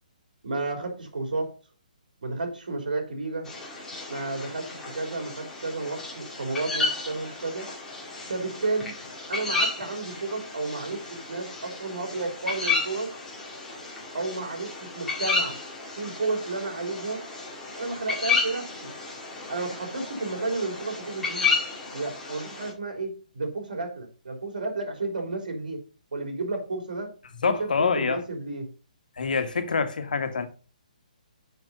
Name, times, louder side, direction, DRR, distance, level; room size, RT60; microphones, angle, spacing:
voice 1, 0.4-1.5 2.2-3.5 4.1-7.7 8.3-8.9 9.3-13.1 14.1-15.6 16.0-17.2 17.7-18.9 19.5-21.5 21.9-25.8 26.1-27.1 27.5-28.7, right 3 dB, 80° right, 3.6 m, -32 dB
sound 1, 3.5-22.7, left 4 dB, 5° left, 2.1 m, -32 dB
voice 2, 27.4-28.2 29.2-30.5, left 5 dB, 80° left, 1.6 m, -25 dB
6.8 x 6.2 x 5.3 m
hypercardioid pair, 165°, 5 cm